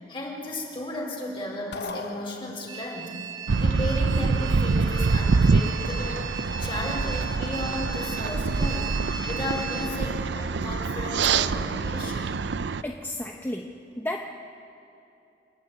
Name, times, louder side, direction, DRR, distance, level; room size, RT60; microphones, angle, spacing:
voice 1, 0.0-3.1 3.6-12.3, left 1 dB, 30° left, -2 dB, 4.5 m, -34 dB
sound 1, 1.7-3.0, left 3 dB, 65° left, 0.9 m, -38 dB
sound 2, 2.7-9.9, right 6 dB, 25° right, 1.0 m, -37 dB
sound 3, 3.5-12.8, right 4 dB, 70° right, 0.5 m, -25 dB
voice 2, 12.8-13.7 14.0-14.2, left 1 dB, 10° left, 2 dB, 0.8 m, -32 dB
28.5 x 11.0 x 9.5 m, 2.7 s
head